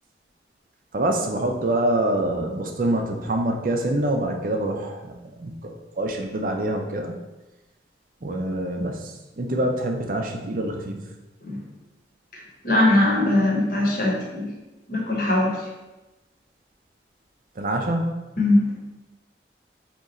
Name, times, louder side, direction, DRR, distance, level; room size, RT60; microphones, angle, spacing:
voice 1, 0.9-5.1 5.4-7.1 8.2-11.0 17.6-18.1, right 1 dB, 50° right, 3 dB, 0.5 m, -25 dB
voice 2, 12.6-14.5 14.9-15.7 18.4-18.7, left 1 dB, 55° left, -2 dB, 1.0 m, -21 dB
3.7 x 2.9 x 4.1 m, 1.1 s
head